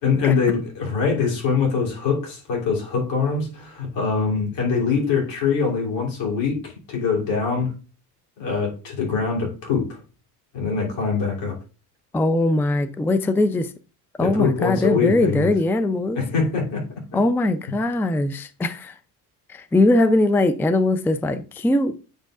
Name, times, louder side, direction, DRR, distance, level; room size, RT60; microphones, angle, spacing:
voice 1, 0.0-7.7 8.4-10.0 10.5-11.6 14.2-15.5 16.1-16.8, left 5 dB, 75° left, 3.1 m, -23 dB
voice 2, 12.1-13.7 14.2-16.2 17.1-18.9 19.5-21.9, left 2 dB, 5° left, 0.4 m, -21 dB
8.8 x 5.1 x 2.4 m
supercardioid pair, 75°, 45 cm